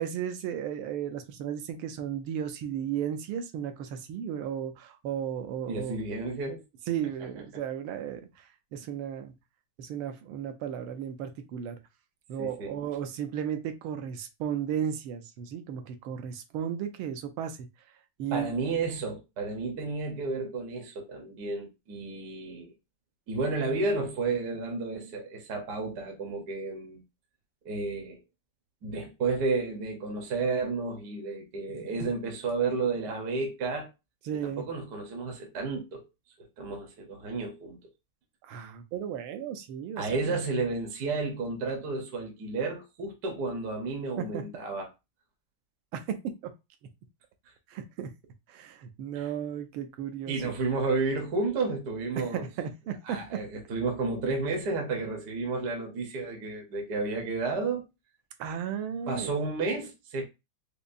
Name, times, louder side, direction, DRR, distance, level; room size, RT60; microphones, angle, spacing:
voice 1, 0.0-6.0 6.9-9.3 9.8-11.8 12.3-17.7 18.2-18.5 34.3-34.7 38.4-40.5 44.2-44.4 45.9-46.5 47.7-48.1 48.5-50.5 52.2-53.4 58.4-59.3, right 9 dB, 75° right, 1.4 m, -34 dB
voice 2, 5.7-6.6 12.4-12.8 18.3-22.7 23.3-27.0 27.6-28.2 28.8-33.9 34.4-36.1 36.6-37.8 40.0-44.9 49.1-49.3 50.3-52.5 53.0-57.9 59.1-60.2, right 3 dB, 60° right, 1.2 m, -32 dB
5.3 x 2.0 x 2.5 m
omnidirectional pair, 2.4 m